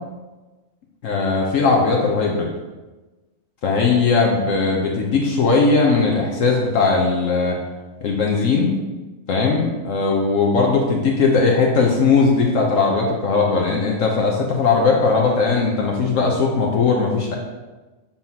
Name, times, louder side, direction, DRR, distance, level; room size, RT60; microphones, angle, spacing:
voice 1, 1.0-2.5 3.6-7.6 8.0-8.8 9.3-17.4, left 4 dB, 65° left, -1 dB, 1.2 m, -18 dB
7.1 x 5.6 x 2.8 m, 1.2 s
omnidirectional pair, 1.5 m